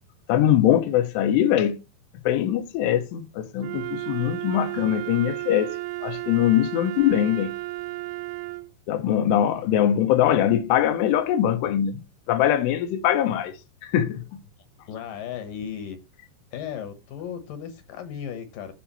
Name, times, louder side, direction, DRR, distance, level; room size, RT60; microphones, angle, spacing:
voice 1, 0.3-1.8 2.3-5.8 6.0-7.5 8.9-13.6 13.8-14.4, left 11 dB, 90° left, 2.9 m, -22 dB
Wind instrument woodwind instrument, 3.6-8.7, right 20 dB, 85° right, 2.8 m, -33 dB
voice 2, 14.9-16.0 16.5-18.7, left 8 dB, 70° left, 2.3 m, -35 dB
14.0 x 4.7 x 3.0 m
omnidirectional pair, 4.8 m